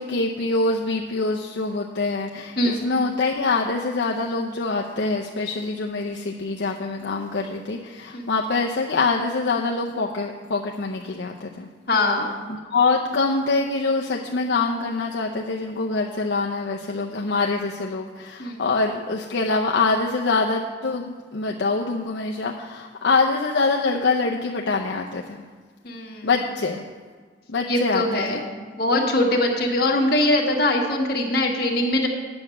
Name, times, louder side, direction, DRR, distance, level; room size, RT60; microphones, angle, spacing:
voice 1, 0.0-11.7 12.5-25.4 26.2-26.8 27.5-28.4, left 3 dB, 70° left, 0 dB, 0.6 m, -25 dB
voice 2, 11.9-12.3 18.4-18.7 25.8-26.3 27.7-28.5 28.7-32.1, left 1 dB, 55° left, 0 dB, 1.5 m, -22 dB
8.7 x 7.8 x 6.4 m, 1.5 s
head